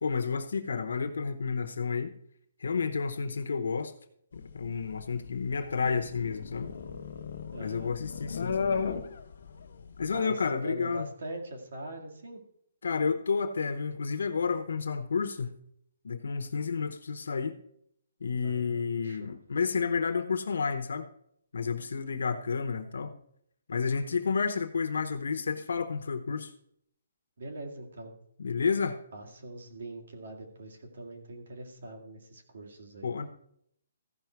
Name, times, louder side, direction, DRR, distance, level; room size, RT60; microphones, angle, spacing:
voice 1, 0.0-2.1 2.6-3.9 4.3-6.7 7.6-8.6 10.0-11.1 12.8-15.6 16.0-17.6 18.2-21.1 21.5-23.2 23.7-26.5 28.4-29.0 33.0-33.3, left 5 dB, 75° left, 6 dB, 0.8 m, -30 dB
sound 1, 4.3-10.2, left 5 dB, 55° left, 1.0 m, -36 dB
voice 2, 7.5-7.9 10.1-12.4 18.4-19.3 27.4-28.1 29.1-33.3, right 1 dB, 65° right, 2 dB, 2.1 m, -42 dB
14.5 x 5.8 x 4.5 m, 0.70 s
hypercardioid pair, 175°, 0 cm